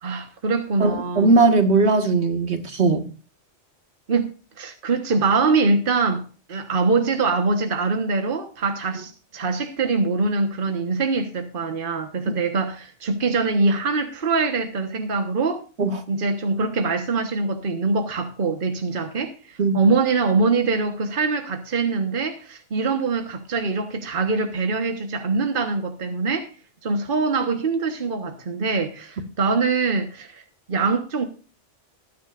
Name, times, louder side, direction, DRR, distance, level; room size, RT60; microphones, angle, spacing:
voice 1, 0.0-1.3 4.1-15.6 16.1-26.5 26.8-30.4 30.7-31.3, right 4 dB, 50° right, 1.5 m, -23 dB
voice 2, 0.8-3.1 15.8-16.0 19.6-19.8, right 3 dB, 75° right, 2.1 m, -19 dB
19.5 x 10.5 x 2.5 m
omnidirectional pair, 1.1 m